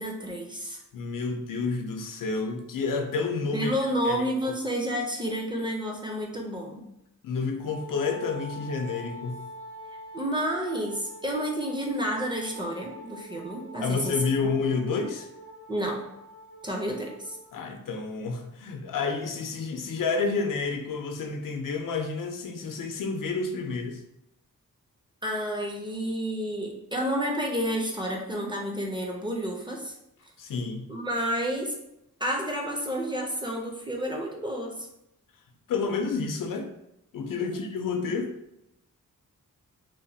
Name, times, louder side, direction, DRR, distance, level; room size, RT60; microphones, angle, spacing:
voice 1, 0.0-0.8 3.5-6.9 10.1-14.2 14.4-14.5 15.7-16.0 16.6-17.4 25.2-29.9 30.9-31.7 32.2-34.9 37.4-37.6, equal, 15° right, 0 dB, 0.4 m, -30 dB
voice 2, 0.9-3.7 4.0-4.3 7.2-9.4 13.8-15.3 17.5-24.0 30.4-30.8 35.7-36.7 37.1-38.3, left 4 dB, 80° left, 5 dB, 0.5 m, -29 dB
Wind instrument woodwind instrument, 7.6-17.6, equal, 80° right, 1.0 m, -45 dB
3.0 x 2.1 x 2.7 m, 0.84 s
wide cardioid pair, 105°, 32 cm